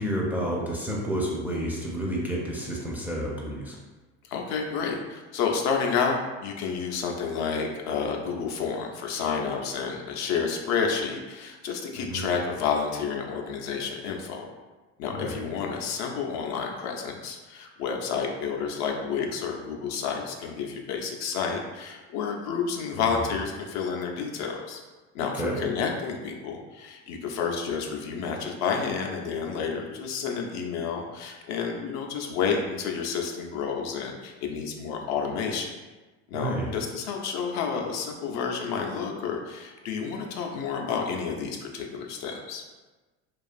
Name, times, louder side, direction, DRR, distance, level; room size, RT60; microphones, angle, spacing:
voice 1, 0.0-3.8 12.0-12.2 15.1-15.4 22.9-23.0 25.4-25.6 36.3-36.7, right 1 dB, 5° right, -4 dB, 0.4 m, -30 dB
voice 2, 4.3-14.5 15.0-24.8 25.1-35.7 36.3-42.6, left 6 dB, 55° left, 1 dB, 0.4 m, -30 dB
2.4 x 2.3 x 2.4 m, 1.2 s
supercardioid pair, 95°, 34 cm